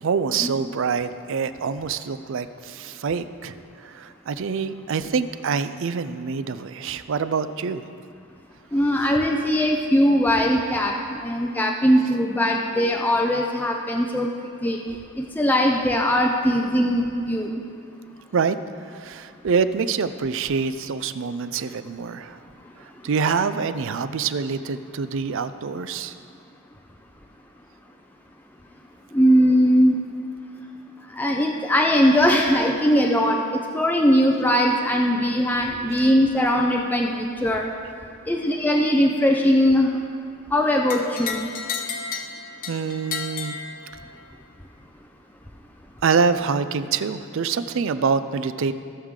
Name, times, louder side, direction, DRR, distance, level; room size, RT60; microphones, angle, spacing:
voice 1, 0.0-7.8 9.0-9.1 18.3-18.6 18.9-22.4 23.0-26.1 35.9-36.1 42.7-43.6 46.0-48.7, right 5 dB, 60° right, 12 dB, 0.4 m, -25 dB
voice 2, 8.7-14.3 14.6-14.8 15.2-17.5 29.1-30.0 31.2-33.4 33.7-37.6 38.3-40.0 40.5-41.4, equal, 10° left, 0 dB, 0.5 m, -20 dB
sound 1, 40.9-44.3, left 5 dB, 40° left, 0.9 m, -32 dB
16.5 x 6.4 x 3.7 m, 2.3 s
head